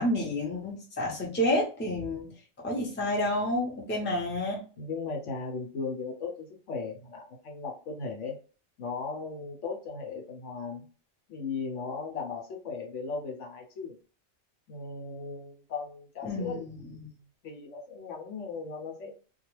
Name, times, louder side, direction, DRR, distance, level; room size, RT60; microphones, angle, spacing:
voice 1, 0.0-2.3 2.6-4.6 16.2-16.8, left 1 dB, 15° left, -3 dB, 0.5 m, -29 dB
voice 2, 4.8-8.4 8.8-10.9 11.3-14.0 14.7-17.1 17.4-19.1, left 4 dB, 65° left, 2 dB, 1.0 m, -37 dB
2.3 x 2.3 x 3.1 m, 0.38 s
omnidirectional pair, 1.4 m